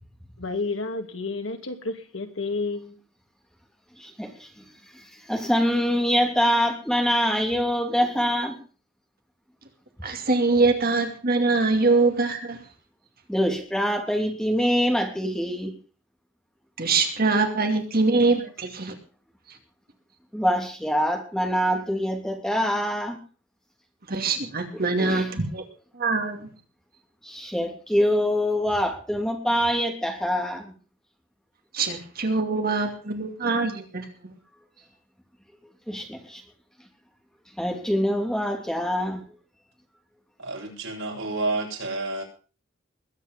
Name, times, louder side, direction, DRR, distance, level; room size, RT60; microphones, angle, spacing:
voice 1, 0.4-3.0, left 3 dB, 70° left, 5 dB, 2.6 m, -30 dB
voice 2, 4.0-4.5 5.3-8.5 13.3-15.8 20.3-23.2 24.7-25.3 27.2-30.7 35.9-36.4 37.6-39.2, equal, 5° left, 3 dB, 2.8 m, -24 dB
voice 3, 10.0-12.6 16.8-18.9 24.1-25.6 25.9-26.5 31.7-34.1, right 3 dB, 50° right, 5 dB, 2.6 m, -23 dB
voice 4, 40.4-42.2, right 2 dB, 75° right, -1 dB, 7.8 m, -29 dB
21.5 x 8.9 x 5.3 m, 0.38 s
head